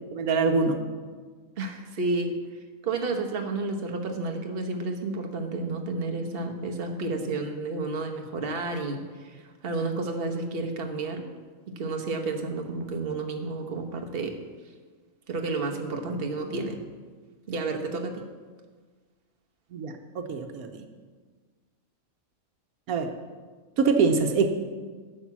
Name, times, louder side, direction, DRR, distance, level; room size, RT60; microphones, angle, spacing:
voice 1, 0.1-0.8 19.7-20.8 22.9-23.1 23.8-24.5, right 4 dB, 85° right, 6 dB, 1.3 m, -24 dB
voice 2, 1.6-2.4 2.8-11.2 11.7-14.3 15.3-16.8 17.5-18.2, right 3 dB, 45° right, 4 dB, 1.2 m, -31 dB
11.5 x 7.6 x 6.0 m, 1.5 s
omnidirectional pair, 1.5 m